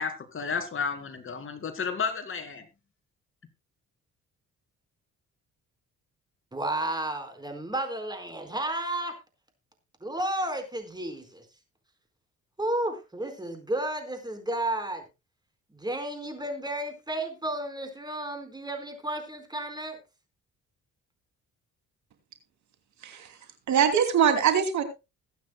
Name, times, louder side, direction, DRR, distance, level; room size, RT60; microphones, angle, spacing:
voice 1, 0.0-2.6, left 5 dB, 45° left, 7 dB, 2.5 m, -32 dB
voice 2, 6.5-9.1 10.0-11.4 12.6-15.0 15.7-20.0, right 1 dB, 15° right, 7 dB, 4.5 m, -32 dB
voice 3, 23.0-23.4 23.7-24.8, right 8 dB, 70° right, 7 dB, 2.7 m, -23 dB
21.5 x 9.3 x 2.3 m, 0.26 s
cardioid pair, 90°, 30 cm